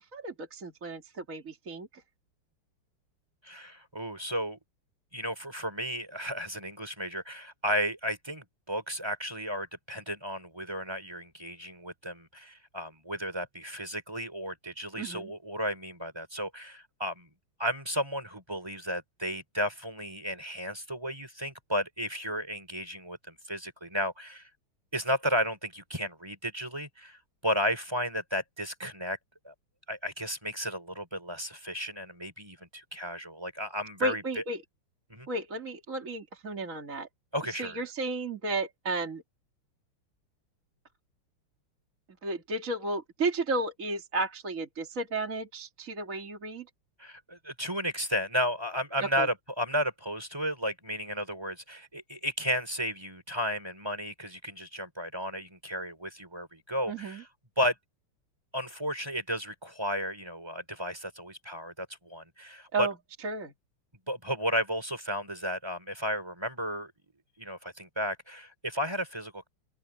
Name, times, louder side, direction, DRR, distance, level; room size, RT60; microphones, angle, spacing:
voice 1, 0.0-1.9 15.0-15.3 34.0-34.6 35.3-37.1 37.5-39.2 42.2-46.7 49.0-49.3 56.9-57.2 62.7-62.9 63.2-63.5, right 3 dB, 35° right, 2.6 m, -33 dB
voice 2, 3.4-4.6 5.1-17.3 17.6-24.5 24.9-29.2 29.4-29.5 29.9-34.4 35.1-35.3 37.3-37.8 47.0-57.3 57.6-57.8 58.5-62.9 64.1-66.9 67.4-69.5, equal, 10° right, 3.9 m, -33 dB
open air
omnidirectional pair, 2.4 m